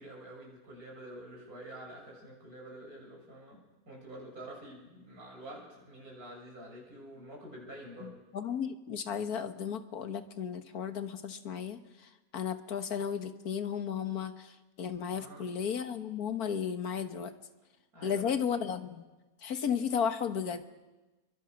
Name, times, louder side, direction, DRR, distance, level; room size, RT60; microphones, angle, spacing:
voice 1, 0.0-8.2 15.1-15.5 17.9-18.3, right 1 dB, 80° right, -2 dB, 7.7 m, -48 dB
voice 2, 8.0-11.8 12.3-17.3 18.0-19.0 19.4-20.7, left 7 dB, 85° left, 9 dB, 1.8 m, -34 dB
29.0 x 23.5 x 6.4 m, 1.1 s
omnidirectional pair, 1.6 m